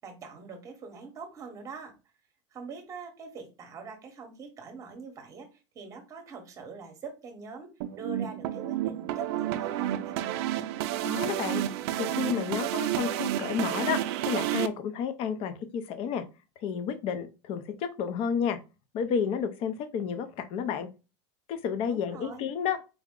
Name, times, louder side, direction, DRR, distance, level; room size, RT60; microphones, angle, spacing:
voice 1, 0.0-2.0 2.5-10.3 21.9-22.5, right 4 dB, 20° right, 4 dB, 1.0 m, -44 dB
sound 1, 7.8-14.7, right 13 dB, 60° right, 0.4 m, -30 dB
voice 2, 11.0-11.6 12.0-14.0 14.3-16.2 16.6-18.6 18.9-20.9 21.5-22.8, left 7 dB, 35° left, 10 dB, 0.5 m, -31 dB
4.7 x 2.1 x 3.6 m, 0.29 s
supercardioid pair, 160°, 16 cm